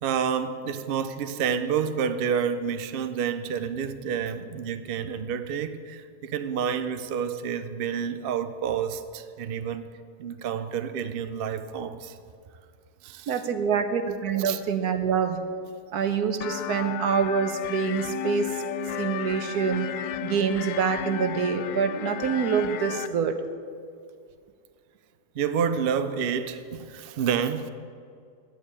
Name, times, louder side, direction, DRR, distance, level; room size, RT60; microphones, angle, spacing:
voice 1, 0.0-9.9 10.2-12.2 13.0-13.4 14.4-14.6 25.3-27.7, right 7 dB, 60° right, 10 dB, 0.6 m, -29 dB
voice 2, 13.3-15.4 15.9-18.6 19.0-19.9 20.2-23.5, right 6 dB, 75° right, 8 dB, 1.4 m, -26 dB
sound 1, 16.4-23.1, left 12 dB, 80° left, 1.1 m, -34 dB
10.0 x 9.1 x 8.7 m, 2.3 s
omnidirectional pair, 1.7 m